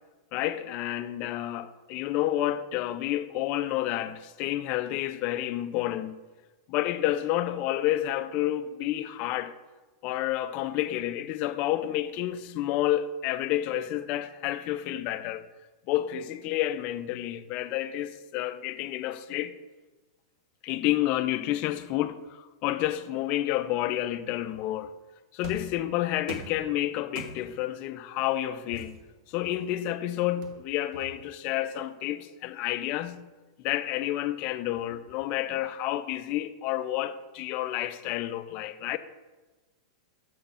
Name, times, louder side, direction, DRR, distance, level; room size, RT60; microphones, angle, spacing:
voice 1, 0.3-6.2 6.7-9.5 10.0-15.4 15.9-19.5 20.6-24.9 25.3-29.0 29.3-33.2 33.6-39.0, left 13 dB, 45° left, 0.4 m, -30 dB
sound 1, 25.4-25.8 26.3-26.6 27.1-27.6 28.7-29.8 30.4-31.4, right 3 dB, 50° right, 1.1 m, -43 dB
7.0 x 3.9 x 5.5 m
hypercardioid pair, 130°, 3 cm